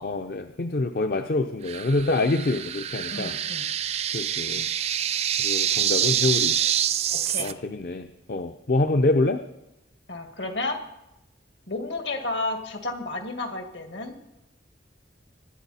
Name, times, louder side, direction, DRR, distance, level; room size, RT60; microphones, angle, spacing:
voice 1, 0.0-3.4 4.1-4.7 5.4-6.6 7.4-9.4, left 2 dB, 55° left, 8 dB, 0.6 m, -26 dB
sound 1, 1.7-7.5, right 10 dB, 35° right, 0.4 m, -26 dB
voice 2, 3.1-3.7 7.1-7.5 10.1-10.8 11.7-14.1, left 2 dB, 70° left, 5 dB, 1.9 m, -32 dB
24.5 x 10.5 x 4.2 m, 0.91 s
head